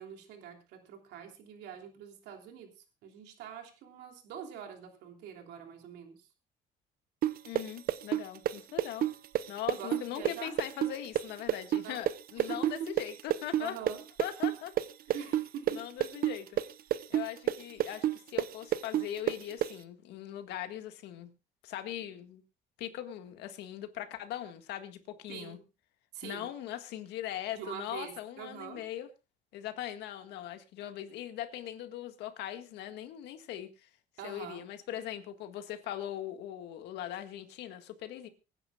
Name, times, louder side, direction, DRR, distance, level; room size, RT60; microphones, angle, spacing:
voice 1, 0.0-2.7 3.0-6.3 9.7-10.6 11.8-12.0 12.3-12.9 13.6-14.0 15.1-15.8 25.3-25.6 26.1-26.5 27.5-28.8 34.2-34.6, right 8 dB, 85° right, 3 dB, 3.1 m, -44 dB
sound 1, 7.2-14.9 15.1-19.7, right 12 dB, 60° right, 0.8 m, -29 dB
voice 2, 7.4-9.1 9.5-13.8 14.2-14.7 15.7-16.5 17.1-21.3 21.6-22.4 22.8-25.6 26.2-29.1 29.5-33.9 34.2-38.3, left 11 dB, 85° left, 8 dB, 1.8 m, -40 dB
25.0 x 10.0 x 2.4 m, 0.28 s
cardioid pair, 110°, 17 cm